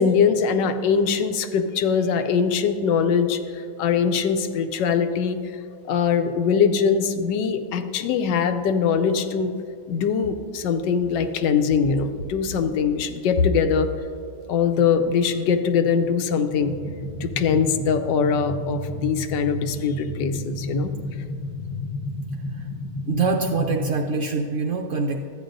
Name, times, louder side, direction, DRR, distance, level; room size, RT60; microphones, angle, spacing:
voice 1, 0.0-5.4 5.9-9.5 9.9-13.9 14.5-16.7 17.2-20.9, left 6 dB, 80° left, 8 dB, 1.3 m, -22 dB
sound 1, 16.5-23.9, left 1 dB, 20° left, 0.4 m, -32 dB
voice 2, 23.1-25.2, right 4 dB, 75° right, 1 dB, 0.6 m, -24 dB
13.0 x 9.3 x 2.6 m, 2.4 s
omnidirectional pair, 1.9 m